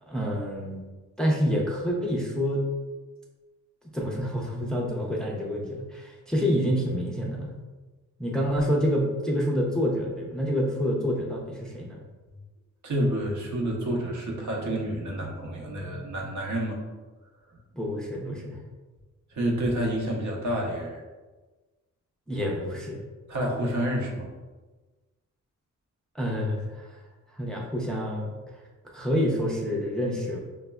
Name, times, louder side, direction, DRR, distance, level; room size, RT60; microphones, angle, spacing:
voice 1, 0.1-0.8 1.2-2.6 3.9-7.5 8.2-12.0 17.7-18.6 22.3-23.0 26.1-27.0 27.3-28.4 28.9-30.4, equal, ahead, -3 dB, 0.5 m, -27 dB
voice 2, 12.8-16.8 19.4-21.0 23.3-24.3, right 1 dB, 70° right, -1 dB, 0.8 m, -29 dB
5.0 x 2.1 x 2.2 m, 1.3 s
cardioid pair, 115°, 31 cm